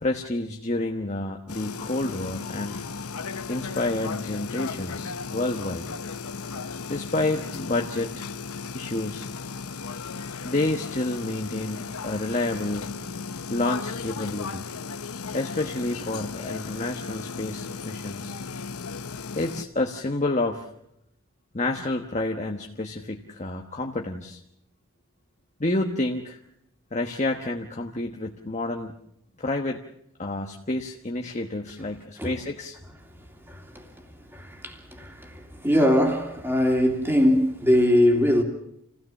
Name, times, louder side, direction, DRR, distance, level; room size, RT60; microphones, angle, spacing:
voice 1, 0.0-2.8 3.5-5.8 6.9-8.2 8.7-9.3 10.4-12.9 13.5-14.7 15.3-18.4 19.3-20.7 21.5-24.4 25.6-26.4 26.9-28.9 29.4-29.8 30.2-32.8, left 2 dB, 30° left, 1.1 m, -29 dB
sound 1, 1.5-19.6, left 5 dB, 85° left, 0.9 m, -35 dB
voice 2, 33.4-33.9 34.3-38.4, equal, 10° right, 2.8 m, -22 dB
27.5 x 16.5 x 7.2 m
head